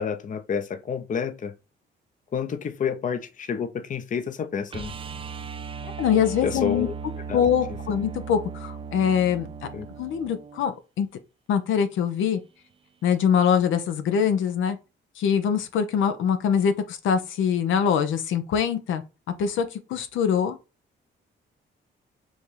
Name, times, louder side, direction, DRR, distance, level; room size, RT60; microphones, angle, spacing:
voice 1, 0.0-1.5 2.3-4.9 6.4-6.9 7.3-7.4 9.7-9.9, left 6 dB, 40° left, 0.7 m, -29 dB
sound 1, 4.7-10.7 13.2-13.3, right 5 dB, 25° right, 0.4 m, -37 dB
voice 2, 5.8-6.9 7.3-9.5 10.0-11.1 11.5-12.4 13.0-14.8 15.2-19.0 19.4-20.6, left 7 dB, 80° left, 0.7 m, -23 dB
5.0 x 2.5 x 3.2 m
cardioid pair, 90°, 20 cm